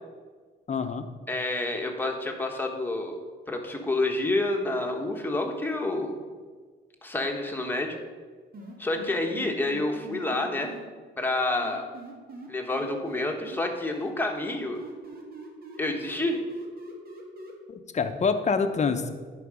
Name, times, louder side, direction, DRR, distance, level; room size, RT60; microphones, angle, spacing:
voice 1, 0.7-1.1 17.7-19.1, left 5 dB, 35° left, 8 dB, 0.8 m, -26 dB
voice 2, 1.3-3.2 3.5-6.2 7.0-8.0 8.8-10.7 11.2-11.9 12.5-14.8 15.8-16.4, left 2 dB, 10° left, 2 dB, 1.4 m, -28 dB
sound 1, 8.5-10.8 11.6-13.6 13.9-17.5, right 2 dB, 50° right, 1.9 m, -43 dB
11.0 x 5.0 x 5.0 m, 1.5 s
cardioid pair, 90°, 20 cm